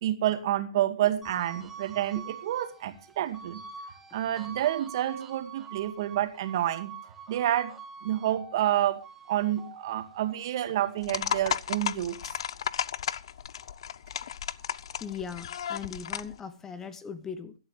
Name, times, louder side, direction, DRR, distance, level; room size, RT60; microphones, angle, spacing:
voice 1, 0.0-3.6 4.1-6.9 7.3-7.7 8.0-9.0 9.3-12.3, right 12 dB, 45° right, 2.1 m, -29 dB
sound 1, 1.2-13.8 14.2-15.9, right 6 dB, 10° right, 2.1 m, -47 dB
sound 2, 11.0-16.4, left 9 dB, 60° left, 0.6 m, -34 dB
voice 2, 15.0-17.6, left 6 dB, 15° left, 0.9 m, -39 dB
18.0 x 12.5 x 3.3 m
hypercardioid pair, 150°, 3 cm